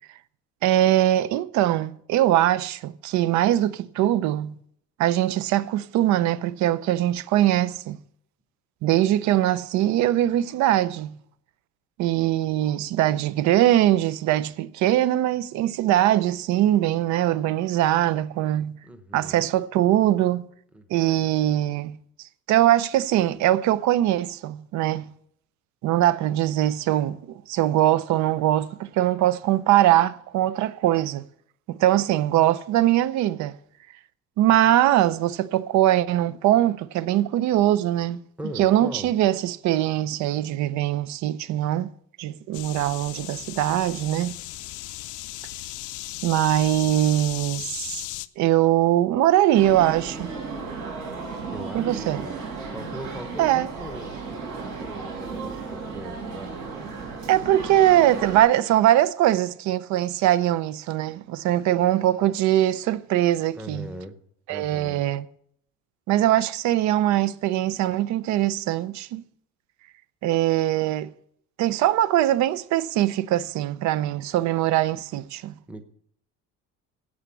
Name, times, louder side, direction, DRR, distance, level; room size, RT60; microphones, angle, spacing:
voice 1, 0.6-4.6 5.0-8.0 8.8-11.2 12.0-18.8 19.1-20.5 20.9-22.0 22.5-25.1 25.8-31.3 31.7-33.5 34.4-38.2 38.6-41.9 42.2-44.4 46.2-48.0 48.4-50.3 51.7-52.2 53.4-53.7 57.3-63.9 64.5-65.3 66.1-69.2 70.2-71.1 71.6-75.5, right 13 dB, 65° right, 0.6 m, -22 dB
voice 2, 18.8-19.5 20.7-21.4 38.4-39.1 51.5-52.4 52.7-56.5 63.5-64.2 64.5-65.0 75.7-75.8, equal, 5° right, 0.8 m, -39 dB
sound 1, 42.5-48.3, left 17 dB, 75° left, 0.6 m, -36 dB
sound 2, 49.5-58.4, right 4 dB, 85° right, 5.9 m, -35 dB
11.5 x 8.6 x 6.9 m
cardioid pair, 180°, 31 cm